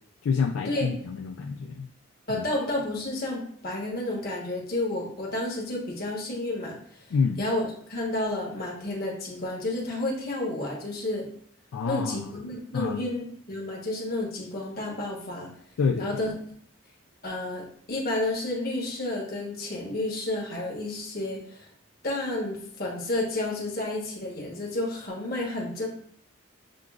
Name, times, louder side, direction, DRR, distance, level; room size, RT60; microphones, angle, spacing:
voice 1, 0.2-1.9 2.3-2.4 7.1-7.4 11.7-12.3 12.7-13.0 15.8-16.1, left 5 dB, 75° left, 4 dB, 0.3 m, -27 dB
voice 2, 2.3-6.8 7.4-11.3 11.8-15.5 16.0-16.3 17.2-21.7 22.0-25.9, left 2 dB, 45° left, -2 dB, 1.2 m, -31 dB
7.4 x 2.5 x 2.4 m, 0.62 s
head